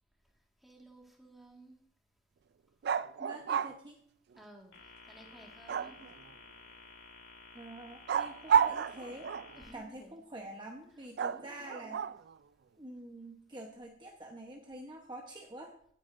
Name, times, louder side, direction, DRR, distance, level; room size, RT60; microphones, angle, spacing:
voice 1, 0.6-1.8 4.4-4.7 5.1-6.1 9.6-10.2 11.2-12.0, right 1 dB, ahead, -1 dB, 1.8 m, -55 dB
sound 1, 2.8-3.8 5.7-6.3 8.1-9.6 11.2-12.3, right 8 dB, 55° right, 0.3 m, -31 dB
voice 2, 3.2-4.0 7.5-9.3 9.7-12.0 12.8-15.7, right 1 dB, 20° right, 0 dB, 1.0 m, -47 dB
sound 2, 4.7-9.7, left 4 dB, 90° left, 3.5 m, -54 dB
17.0 x 9.0 x 2.6 m, 0.64 s
head